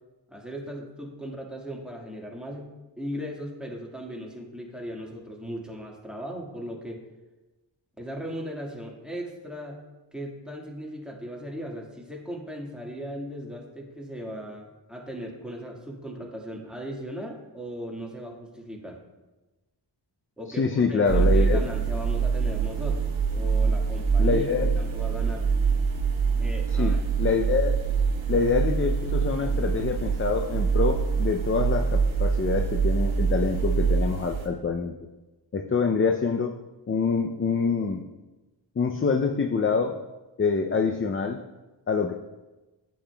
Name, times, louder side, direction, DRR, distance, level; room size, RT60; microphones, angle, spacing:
voice 1, 0.3-7.0 8.0-9.8 10.1-19.0 20.4-23.0 23.3-25.5 26.4-27.0, equal, ahead, -2 dB, 1.7 m, -37 dB
voice 2, 20.5-21.6 24.2-24.7 26.8-27.8 28.3-34.9 35.5-36.5 36.9-38.0 38.8-40.0 40.4-41.4 41.9-42.1, left 5 dB, 30° left, 4 dB, 0.5 m, -25 dB
sound 1, 21.1-34.5, right 5 dB, 80° right, 1.0 m, -25 dB
8.6 x 7.5 x 2.3 m, 1.1 s
cardioid pair, 40°, 47 cm